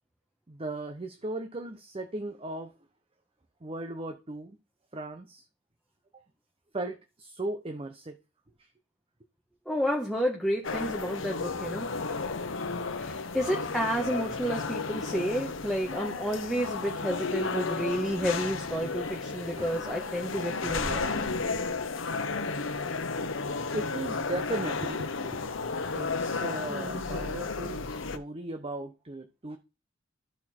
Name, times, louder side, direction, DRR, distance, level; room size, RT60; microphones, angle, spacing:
voice 1, 0.5-2.7 3.6-4.6 4.9-5.5 6.7-8.2 8.6-8.7 19.6-19.8 23.7-25.5 25.9-29.6, right 2 dB, 30° right, 0.7 m, -37 dB
voice 2, 9.6-11.9 13.0-21.3 26.7-27.0, equal, ahead, 1.3 m, -31 dB
sound 1, 10.6-28.2, left 4 dB, 75° left, 0.9 m, -33 dB
13.0 x 4.3 x 4.4 m
head